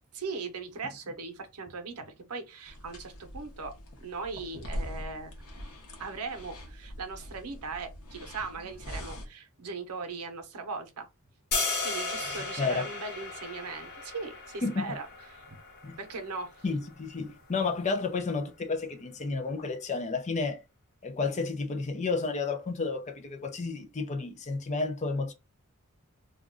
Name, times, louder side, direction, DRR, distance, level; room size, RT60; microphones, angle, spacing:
voice 1, 0.1-3.7 4.0-5.4 6.0-11.1 11.8-15.4 16.0-16.6, right 4 dB, 85° right, 0.7 m, -39 dB
sound 1, 2.7-9.3, equal, 80° left, 0.8 m, -42 dB
sound 2, 11.5-17.6, left 3 dB, 50° left, 0.9 m, -36 dB
voice 2, 12.3-12.9 14.6-14.9 15.8-16.0 16.6-20.6 21.0-25.3, left 4 dB, 30° left, 0.4 m, -31 dB
2.4 x 2.2 x 3.6 m
head